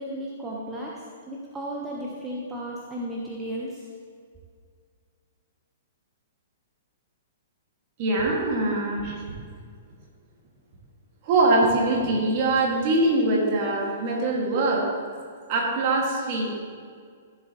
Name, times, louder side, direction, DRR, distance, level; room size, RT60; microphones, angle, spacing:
voice 1, 0.0-3.9, right 1 dB, 15° right, -3 dB, 1.2 m, -34 dB
voice 2, 8.0-9.2 11.2-14.9 15.5-16.5, right 2 dB, 45° right, -1 dB, 2.3 m, -23 dB
14.5 x 7.2 x 3.2 m, 2.1 s
figure-of-eight pair, 110°, 0 cm